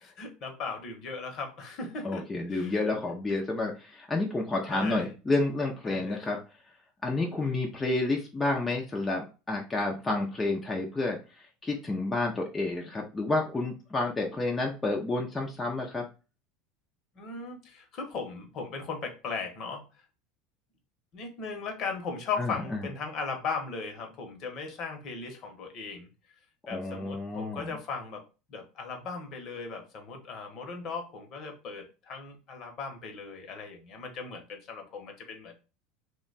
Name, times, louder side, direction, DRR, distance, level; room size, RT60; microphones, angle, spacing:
voice 1, 0.0-2.8 4.7-5.1 5.8-6.4 17.1-19.8 21.1-26.1 26.7-28.2 28.5-35.6, left 4 dB, 50° left, 4 dB, 1.0 m, -37 dB
voice 2, 2.0-6.4 7.0-11.2 11.6-16.0 22.4-22.5 26.7-27.8, left 2 dB, 15° left, 0 dB, 0.6 m, -30 dB
2.8 x 2.2 x 4.0 m, 0.32 s
supercardioid pair, 120°, 0 cm